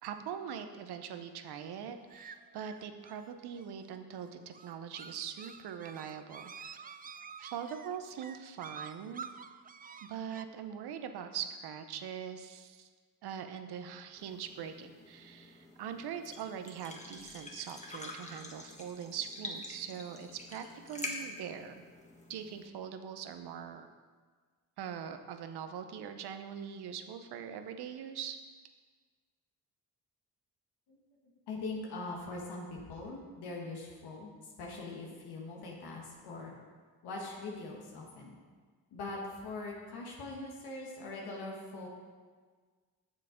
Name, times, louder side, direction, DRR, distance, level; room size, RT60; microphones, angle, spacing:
voice 1, 0.0-6.9 7.4-9.3 10.0-12.9 13.2-21.8 22.3-23.9 24.8-28.4, right 8 dB, 85° right, 8 dB, 0.8 m, -42 dB
sound 1, 2.1-10.4, right 6 dB, 25° right, 0.4 m, -49 dB
sound 2, 14.2-22.7, left 2 dB, 20° left, 1.5 m, -46 dB
voice 2, 31.5-36.5 37.0-38.4 38.9-41.9, left 2 dB, 90° left, -2 dB, 1.5 m, -42 dB
7.2 x 6.8 x 5.0 m, 1.5 s
cardioid pair, 60°, 38 cm